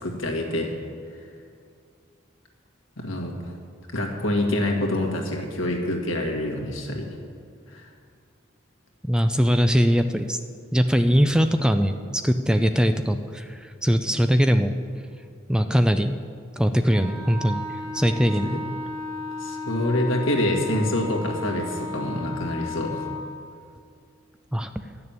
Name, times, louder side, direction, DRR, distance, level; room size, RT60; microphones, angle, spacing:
voice 1, 0.0-0.7 3.0-3.3 3.9-7.1 7.7-7.8 11.1-11.2 18.5-18.6 19.4-23.1, left 1 dB, 80° left, 1 dB, 2.0 m, -26 dB
voice 2, 9.0-10.4 10.7-14.8 15.5-16.2 16.6-17.6 17.9-18.6 24.5-24.7, equal, 5° right, 8 dB, 0.4 m, -21 dB
Wind instrument woodwind instrument, 16.9-23.3, left 2 dB, 25° right, 3.1 m, -34 dB
12.0 x 6.8 x 8.9 m, 2.3 s
head